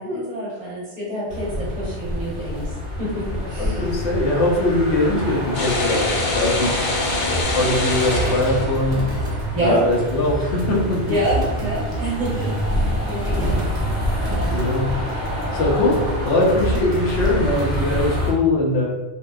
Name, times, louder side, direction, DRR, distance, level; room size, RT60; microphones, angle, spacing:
voice 1, 0.0-2.7 3.0-3.9 9.5-9.8 11.1-13.7 14.1-14.5, right 1 dB, 40° right, -7 dB, 0.8 m, -27 dB
sound 1, 1.3-18.3, left 1 dB, 10° left, 1.0 m, -27 dB
voice 2, 3.6-6.7 7.3-9.0 9.6-11.0 14.2-14.9 15.5-16.0 16.2-18.8, left 2 dB, 85° left, -2 dB, 0.9 m, -21 dB
sound 2, 5.5-9.2, left 2 dB, 55° left, 0.6 m, -24 dB
sound 3, 7.4-18.1, right 3 dB, 85° right, 1.0 m, -29 dB
2.7 x 2.1 x 2.2 m, 1.1 s
omnidirectional pair, 1.1 m